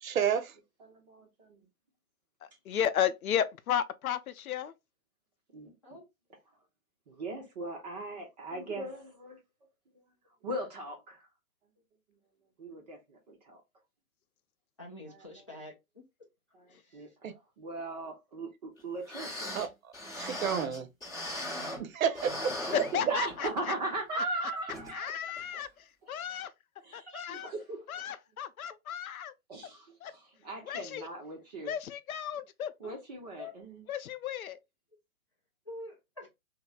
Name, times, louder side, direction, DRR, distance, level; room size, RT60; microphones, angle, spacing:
voice 1, 0.0-0.5 17.2-17.3 19.5-19.7 20.2-20.9 21.8-22.6, right 8 dB, 65° right, 0.6 m, -30 dB
voice 2, 0.8-1.6 5.5-5.7 7.1-9.4 10.4-11.3 12.6-13.6 15.1-15.3 16.5-19.6 22.7-25.1 25.5-25.6 26.0-26.1 26.8-28.1 29.5-31.7 32.8-33.9, right 2 dB, 30° right, 0.5 m, -39 dB
voice 3, 2.7-4.7 22.7-23.7 24.1-24.5 24.9-25.7 26.1-26.5 26.9-27.5 27.9-29.3 30.0-30.1 30.7-31.1 31.6-32.9 33.9-34.6, left 9 dB, 75° left, 0.5 m, -33 dB
voice 4, 14.8-16.0 16.8-17.1 24.2-24.3 25.0-25.1 27.1-27.3 33.4-33.5 35.7-36.3, left 1 dB, 25° left, 0.3 m, -46 dB
sound 1, 18.8-18.9 19.1-21.9 22.1-23.5 23.9-24.0 24.7-24.9 25.4-25.5, left 1 dB, 10° left, 0.8 m, -39 dB
3.1 x 2.0 x 2.3 m
figure-of-eight pair, 125°, 44 cm